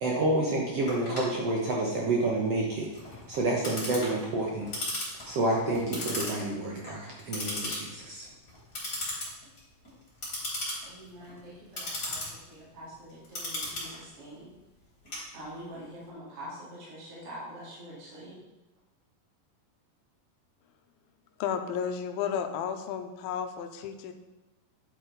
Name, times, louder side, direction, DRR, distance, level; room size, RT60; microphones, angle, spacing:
voice 1, 0.0-2.9 3.3-4.7 5.3-8.3, right 2 dB, 60° right, -2 dB, 1.7 m, -29 dB
Clock, 0.9-15.8, left 1 dB, 25° left, 4.0 m, -38 dB
voice 2, 10.8-14.5 15.3-18.4, equal, 40° right, -7 dB, 3.5 m, -45 dB
voice 3, 21.4-24.1, left 8 dB, 85° left, 6 dB, 2.6 m, -32 dB
10.0 x 8.1 x 4.0 m, 1.1 s
omnidirectional pair, 4.2 m